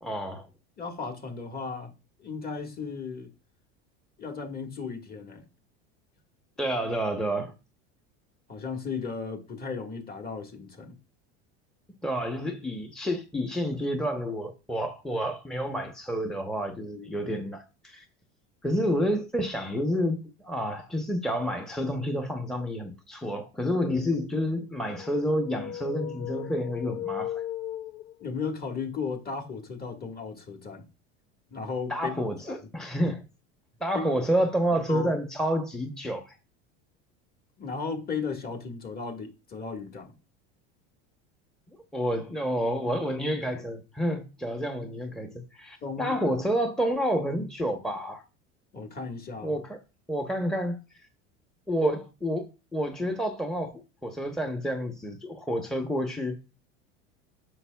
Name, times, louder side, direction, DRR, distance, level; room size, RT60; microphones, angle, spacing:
voice 1, 0.0-0.5 6.6-7.5 12.0-18.1 18.6-27.4 31.9-33.2 33.8-36.4 41.9-48.2 49.4-49.8 50.1-50.8 51.7-52.5 52.7-53.7 54.0-56.4, equal, ahead, 0.9 m, -29 dB
voice 2, 0.8-1.9 2.2-3.3 4.2-5.4 8.5-11.0 28.2-30.9 31.5-32.1 32.5-32.6 33.9-34.3 34.9-35.1 37.6-40.1 45.8-46.2 48.7-49.6, left 5 dB, 25° left, 1.7 m, -35 dB
sound 1, 24.9-28.5, left 11 dB, 50° left, 0.4 m, -37 dB
9.6 x 6.7 x 2.3 m
supercardioid pair, 105°, 35 cm